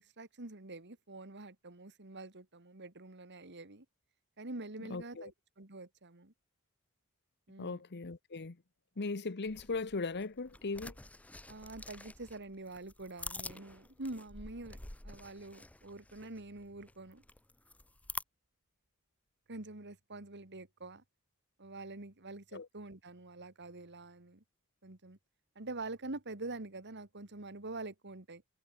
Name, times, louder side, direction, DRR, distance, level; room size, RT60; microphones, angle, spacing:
voice 1, 0.0-3.9 4.4-6.3 7.5-7.8 11.5-17.2 19.5-21.0 21.6-24.4 24.8-25.2 25.6-28.4, right 2 dB, 55° right, 2.4 m, -46 dB
voice 2, 4.9-5.3 7.6-8.6 9.0-10.9 22.5-22.7, left 3 dB, 50° left, 0.9 m, -38 dB
sound 1, 9.4-18.2, left 2 dB, 5° left, 0.6 m, -48 dB
head